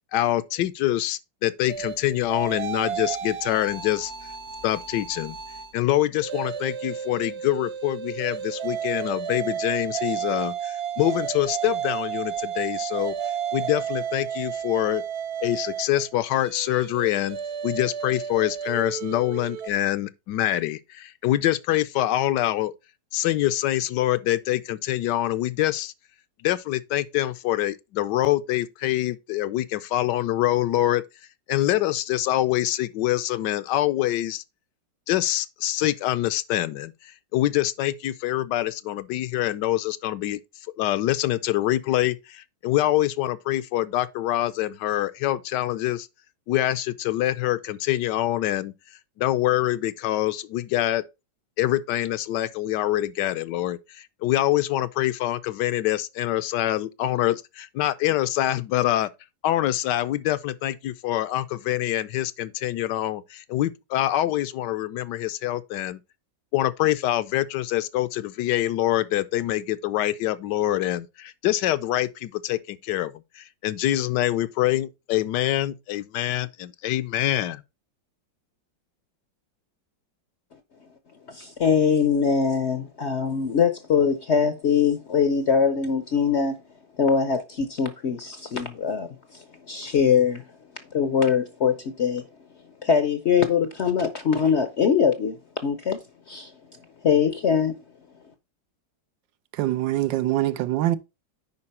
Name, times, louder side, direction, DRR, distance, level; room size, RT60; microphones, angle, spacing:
voice 1, 0.1-4.1 4.6-5.4 5.7-13.1 13.5-15.0 15.4-17.4 17.6-22.7 23.1-25.9 26.4-31.0 31.5-34.4 35.1-40.4 40.8-46.1 46.5-48.7 49.2-51.0 51.6-59.1 59.4-66.0 66.5-77.6, left 14 dB, 75° left, 1.2 m, -25 dB
sound 1, 1.7-5.7 6.1-19.7, right 8 dB, 55° right, 0.8 m, -32 dB
voice 2, 81.3-86.6 87.0-90.4 90.9-92.2 92.8-95.4 95.6-96.0 96.3-96.5 97.0-97.8, left 6 dB, 60° left, 0.7 m, -22 dB
voice 3, 99.5-101.0, right 14 dB, 85° right, 1.4 m, -24 dB
9.8 x 4.3 x 4.2 m
omnidirectional pair, 1.9 m